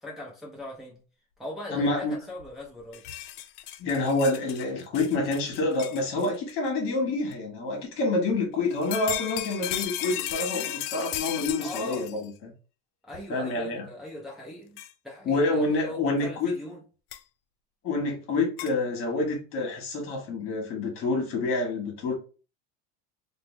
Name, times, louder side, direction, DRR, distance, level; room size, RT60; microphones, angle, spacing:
voice 1, 0.0-1.0 1.4-3.1 11.6-12.1 13.0-14.8 15.0-16.8, left 1 dB, ahead, 0.5 m, -40 dB
voice 2, 1.7-2.2 3.8-12.5 13.3-13.9 15.2-16.5 17.8-22.1, left 2 dB, 45° left, 1.3 m, -27 dB
sound 1, 2.4-2.5 2.8-6.5 7.3-7.4 8.7-12.3 13.1-13.2 14.8-14.9 17.1-17.2 18.6-18.7, left 12 dB, 75° left, 0.4 m, -35 dB
3.2 x 2.0 x 3.1 m
supercardioid pair, 140°, 29 cm